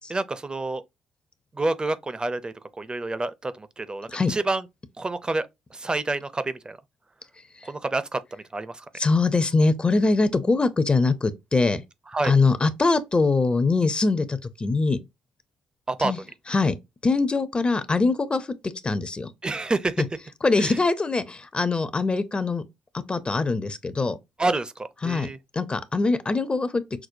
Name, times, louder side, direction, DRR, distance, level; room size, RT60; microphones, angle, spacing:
voice 1, 0.1-0.8 1.5-4.6 5.0-6.8 7.6-8.8 12.1-12.4 15.9-16.1 19.4-20.0 20.6-20.8 24.4-25.4, right 2 dB, 25° right, 0.6 m, -28 dB
voice 2, 9.0-11.8 12.2-15.0 16.0-16.2 16.5-16.8 17.0-19.3 20.4-22.6 22.9-24.2 25.0-26.8, left 3 dB, 30° left, 0.6 m, -23 dB
5.9 x 2.2 x 2.6 m
hypercardioid pair, 45°, 4 cm